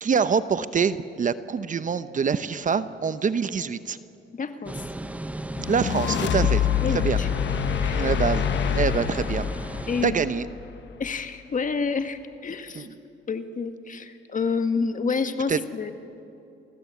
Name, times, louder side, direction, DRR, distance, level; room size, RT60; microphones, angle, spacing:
voice 1, 0.0-4.0 5.6-7.2 7.9-9.4 10.0-10.5 12.7-12.9 15.5-15.6, right 6 dB, 40° right, 13 dB, 0.9 m, -25 dB
voice 2, 4.3-4.8 6.8-7.3 7.8-8.1 9.9-10.2 11.0-12.9 13.3-15.9, left 5 dB, 40° left, 8 dB, 1.8 m, -28 dB
sound 1, 4.7-10.1, right 1 dB, 5° right, 0.9 m, -35 dB
sound 2, 5.6-10.9, left 9 dB, 65° left, 1.3 m, -26 dB
27.5 x 19.5 x 8.5 m, 2.8 s
cardioid pair, 90°, 20 cm